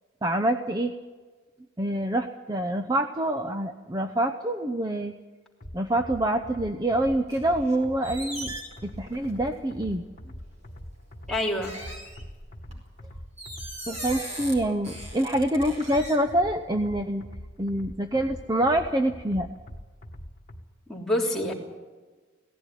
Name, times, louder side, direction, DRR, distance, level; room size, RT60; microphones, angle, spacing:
voice 1, 0.2-0.9 1.8-5.1 5.7-8.5 8.8-10.0 13.9-17.3 17.6-19.5, right 1 dB, 20° right, 7 dB, 0.7 m, -26 dB
sound 1, 5.6-20.6, equal, 40° left, 1.8 m, -43 dB
sound 2, 7.3-7.8 8.0-9.5 10.4-10.6 11.6-12.7 13.4-14.6 14.8-16.2, right 1 dB, 35° right, 5.0 m, -39 dB
voice 2, 11.3-11.8 20.9-21.5, left 1 dB, ahead, -3 dB, 3.3 m, -27 dB
18.0 x 15.5 x 10.0 m, 1.3 s
head